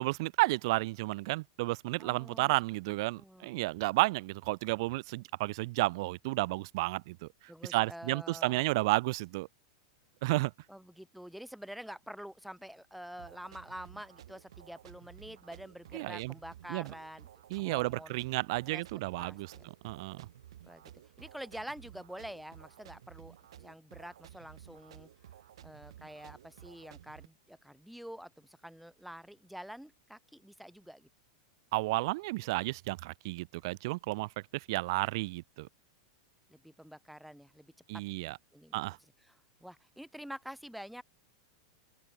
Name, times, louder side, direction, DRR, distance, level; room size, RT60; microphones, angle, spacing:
voice 1, 0.0-7.3 7.7-9.5 10.2-10.5 15.9-16.3 16.7-16.9 17.5-19.5 19.8-20.3 31.7-35.7 37.9-38.4 38.7-39.0, right 22 dB, 55° right, 0.5 m, -32 dB
voice 2, 2.0-2.5 2.9-3.5 7.5-8.7 10.7-18.2 18.7-19.7 20.6-20.9 21.2-25.1 25.6-31.1 36.5-38.0 38.5-38.8 39.3-41.0, equal, ahead, 3.9 m, -47 dB
sound 1, 13.2-27.3, right 11 dB, 85° right, 3.7 m, -54 dB
open air
supercardioid pair, 145°, 3 cm